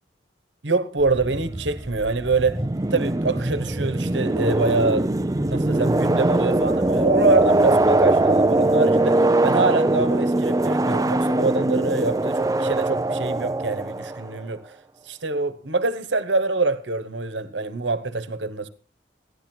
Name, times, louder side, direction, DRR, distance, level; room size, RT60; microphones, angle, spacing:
voice 1, 0.6-2.6 2.9-5.1 5.4-14.8 15.0-18.7, right 3 dB, 85° right, 1.3 m, -25 dB
sound 1, 1.0-14.4, right 2 dB, 20° right, 0.6 m, -22 dB
15.5 x 11.5 x 4.5 m
head